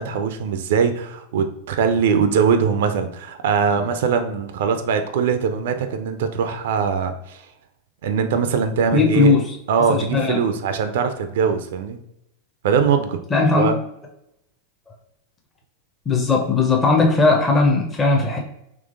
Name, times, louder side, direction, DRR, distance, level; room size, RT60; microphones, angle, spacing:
voice 1, 0.0-7.4 8.0-9.3 9.7-12.0 12.6-13.2 13.5-13.7, right 6 dB, 55° right, 8 dB, 0.3 m, -21 dB
voice 2, 8.9-9.5 9.9-10.4 13.3-13.7 16.1-18.4, left 3 dB, 20° left, 0 dB, 0.5 m, -18 dB
3.8 x 2.9 x 2.4 m, 0.81 s
figure-of-eight pair, 90°, 0 cm